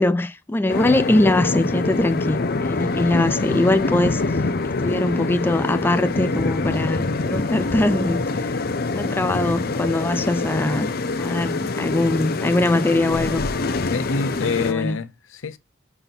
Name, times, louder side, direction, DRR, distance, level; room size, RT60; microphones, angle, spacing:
voice 1, 0.0-8.6 8.9-10.9 11.2-13.4 14.3-15.0, left 2 dB, 10° left, 0.3 m, -22 dB
sound 1, 0.7-14.7, left 3 dB, 50° left, 0.6 m, -25 dB
voice 2, 13.9-15.6, left 5 dB, 90° left, 0.7 m, -26 dB
5.6 x 4.4 x 5.3 m
head